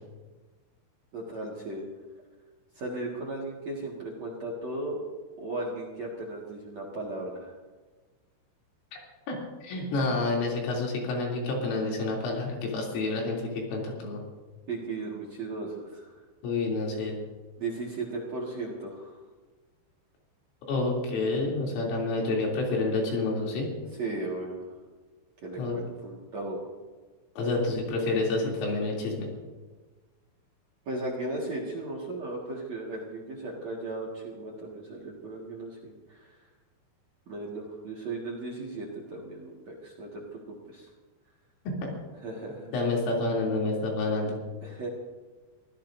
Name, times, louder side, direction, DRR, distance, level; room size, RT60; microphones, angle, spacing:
voice 1, 1.1-1.8 2.7-5.0 5.4-7.5 14.7-16.1 17.6-19.2 24.0-24.6 25.4-26.6 30.9-36.5 37.3-40.9 42.2-42.7 44.6-44.9, right 2 dB, 50° right, -2 dB, 2.1 m, -36 dB
voice 2, 9.6-14.2 16.4-17.2 20.7-23.7 25.6-25.8 27.4-29.3 42.7-44.4, left 2 dB, 80° left, -2 dB, 5.8 m, -28 dB
25.0 x 16.0 x 2.7 m, 1.3 s
omnidirectional pair, 5.7 m